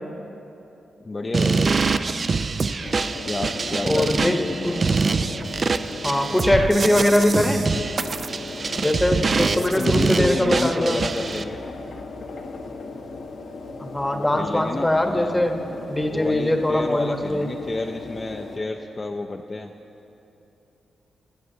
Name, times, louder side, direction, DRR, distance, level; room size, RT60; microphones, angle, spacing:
voice 1, 1.0-1.8 3.2-4.7 9.5-11.6 14.1-15.5 16.1-19.7, left 2 dB, 35° left, 3 dB, 0.4 m, -30 dB
sound 1, 1.3-11.4, right 4 dB, 45° right, 0.3 m, -24 dB
sound 2, 2.8-18.6, left 3 dB, 75° left, 0.9 m, -37 dB
voice 2, 3.8-4.8 6.0-7.7 8.8-11.0 13.8-15.6 15.9-17.5, left 1 dB, 10° left, 5 dB, 0.9 m, -22 dB
20.0 x 7.4 x 2.7 m, 2.9 s
cardioid pair, 65°, 0 cm